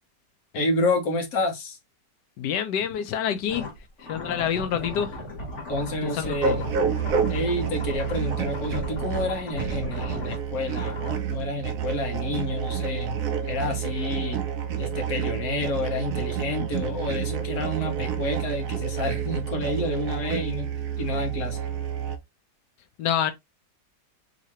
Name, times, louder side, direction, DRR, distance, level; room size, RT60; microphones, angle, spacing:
voice 1, 0.5-1.8 5.7-6.6 7.3-11.0 11.3-13.2 13.5-14.4 14.8-20.7 21.0-21.6, left 2 dB, 60° left, 1.5 m, -29 dB
voice 2, 2.4-3.7 4.1-5.2 6.0-6.7 23.0-23.3, left 9 dB, 80° left, 1.2 m, -27 dB
sound 1, 3.5-11.2, left 1 dB, 45° left, 1.7 m, -36 dB
sound 2, 6.4-22.2, right 7 dB, 65° right, 0.9 m, -29 dB
3.7 x 2.9 x 3.0 m
omnidirectional pair, 1.9 m